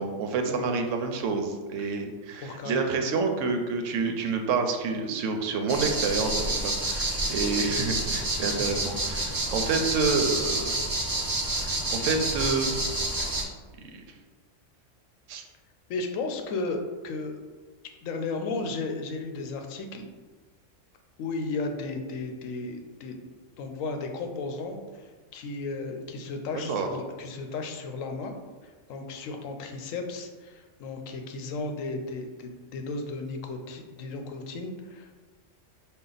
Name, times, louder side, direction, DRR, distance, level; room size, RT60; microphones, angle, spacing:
voice 1, 0.0-10.8 11.6-12.8 13.8-14.0 15.3-15.4 26.5-26.9, right 4 dB, 80° right, 5 dB, 0.9 m, -28 dB
voice 2, 2.4-2.8 7.6-7.9 15.9-16.8 17.0-17.4 18.0-20.1 21.2-23.2 23.6-28.3 28.6-35.1, left 3 dB, 90° left, 5 dB, 1.0 m, -34 dB
sound 1, 5.7-13.4, right 2 dB, 30° right, 0.4 m, -29 dB
5.3 x 2.3 x 3.9 m, 1.4 s
omnidirectional pair, 1.3 m